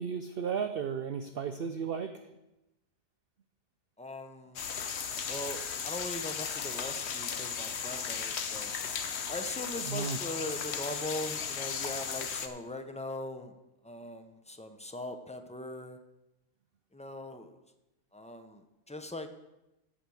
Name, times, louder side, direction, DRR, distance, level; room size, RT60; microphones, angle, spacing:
voice 1, 0.0-2.2 9.9-10.2, right 6 dB, 55° right, 8 dB, 0.7 m, -34 dB
voice 2, 4.0-4.7 5.3-8.7 9.3-13.6 13.8-16.0 16.9-17.6 18.1-19.3, left 1 dB, 10° left, 7 dB, 0.5 m, -40 dB
sound 1, 4.6-12.5, left 6 dB, 55° left, 1.0 m, -36 dB
14.5 x 5.0 x 7.0 m, 0.95 s
omnidirectional pair, 1.5 m